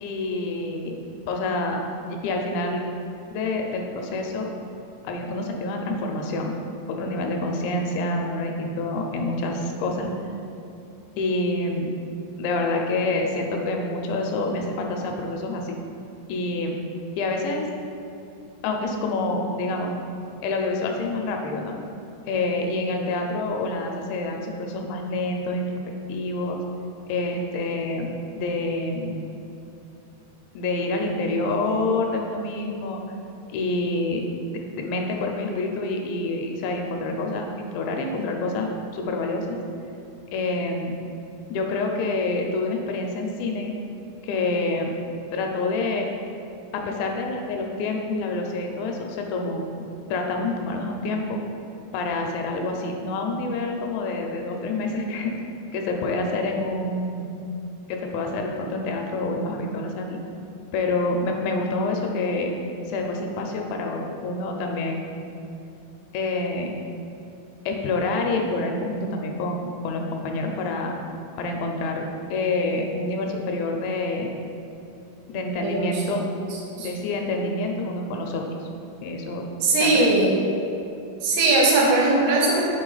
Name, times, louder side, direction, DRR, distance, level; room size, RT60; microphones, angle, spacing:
voice 1, 0.0-1.0 1.3-1.8 2.1-2.8 3.3-4.5 5.0-6.6 6.9-10.1 11.2-11.9 12.4-15.8 16.3-16.8 17.1-17.7 18.6-20.0 20.4-21.8 22.3-25.7 26.1-26.6 27.1-29.2 30.6-33.0 33.5-37.5 37.7-39.6 40.3-40.9 41.5-43.7 44.2-44.9 45.3-46.1 46.7-49.6 50.1-51.4 51.9-55.3 55.7-57.3 57.9-60.2 60.7-62.5 62.9-65.1 66.1-66.7 67.7-71.0 71.4-74.3 75.3-76.3 76.8-78.4 79.0-79.5 79.8-80.1, left 2 dB, 85° left, 2 dB, 2.8 m, -27 dB
voice 2, 75.6-76.2 76.5-76.9 79.6-80.4 81.2-82.6, right 2 dB, 75° right, -3 dB, 2.8 m, -20 dB
6.4 x 4.5 x 3.8 m, 2.8 s
omnidirectional pair, 5.2 m